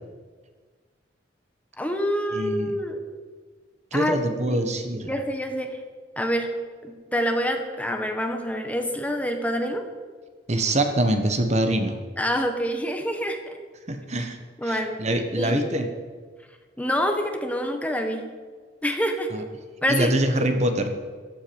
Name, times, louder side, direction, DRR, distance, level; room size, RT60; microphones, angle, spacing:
voice 1, 1.8-3.0 3.9-4.6 5.0-5.8 6.2-6.5 6.8-9.9 12.2-13.6 14.6-15.8 16.8-18.3 18.8-19.3 19.8-20.1 20.4-20.5, equal, 10° left, 4 dB, 1.6 m, -27 dB
voice 2, 2.3-2.8 3.9-5.1 10.5-12.0 13.9-14.4 14.6-15.9 19.3-19.4 19.9-20.9, right 1 dB, 40° right, 6 dB, 1.4 m, -24 dB
15.0 x 12.5 x 7.1 m, 1.5 s
head